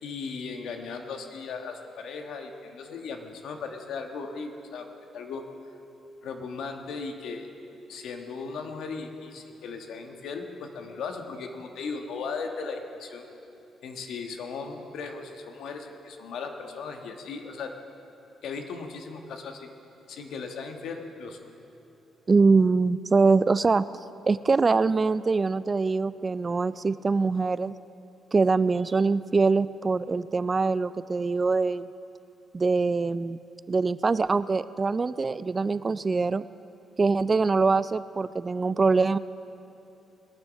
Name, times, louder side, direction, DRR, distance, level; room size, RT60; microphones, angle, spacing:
voice 1, 0.0-4.9 5.1-5.4 6.2-7.5 7.9-13.3 13.8-17.7 18.4-19.7 20.1-21.6, left 4 dB, 75° left, 4 dB, 1.3 m, -37 dB
voice 2, 22.3-23.9 24.3-27.7 28.3-31.9 32.5-33.4 33.7-36.5 37.0-39.2, right 4 dB, 30° right, 16 dB, 0.3 m, -23 dB
20.5 x 7.1 x 6.4 m, 2.8 s
cardioid pair, 90°, 0 cm